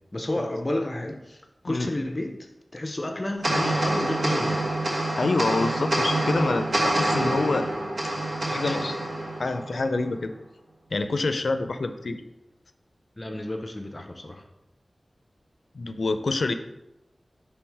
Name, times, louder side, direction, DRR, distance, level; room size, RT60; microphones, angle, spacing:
voice 1, 0.1-4.7 13.2-14.4, left 1 dB, 35° left, 4 dB, 0.6 m, -31 dB
sound 1, 3.4-10.1, right 1 dB, 75° right, 1.3 m, -26 dB
voice 2, 5.2-7.7 8.5-9.0 9.4-10.3 10.9-12.2 15.7-16.5, left 3 dB, 80° left, 9 dB, 0.4 m, -26 dB
6.2 x 3.3 x 4.7 m, 0.90 s
wide cardioid pair, 75°, 0 cm